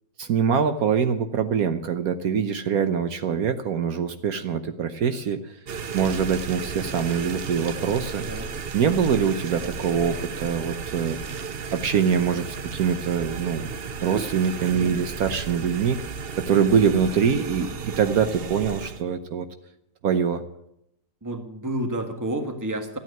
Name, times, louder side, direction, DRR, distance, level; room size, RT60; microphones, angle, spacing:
voice 1, 0.2-5.5 5.9-8.2 8.7-11.2 11.7-13.7 14.0-16.0 16.4-19.5 20.0-20.4, right 7 dB, 65° right, 8 dB, 1.3 m, -24 dB
sound 1, 5.7-19.0, right 6 dB, 50° right, 0.8 m, -34 dB
voice 2, 8.2-8.5 14.7-14.9 21.2-23.0, right 1 dB, 10° right, 6 dB, 1.4 m, -30 dB
14.0 x 9.2 x 9.2 m, 0.81 s
omnidirectional pair, 1.7 m